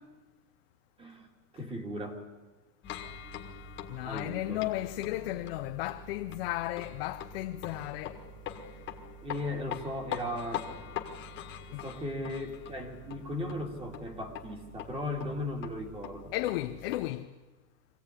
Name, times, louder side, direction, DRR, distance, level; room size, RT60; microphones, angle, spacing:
voice 1, 1.0-1.3 1.5-2.2 4.0-4.6 5.0-5.3 9.2-10.7 11.8-16.3, left 1 dB, 10° right, 2.3 m, -37 dB
sound 1, 2.8-17.1, left 7 dB, 25° left, 1.8 m, -43 dB
voice 2, 3.9-8.2 11.7-11.9 16.3-17.3, left 16 dB, 40° left, 0.7 m, -34 dB
24.5 x 16.5 x 9.8 m
supercardioid pair, 165°, 47 cm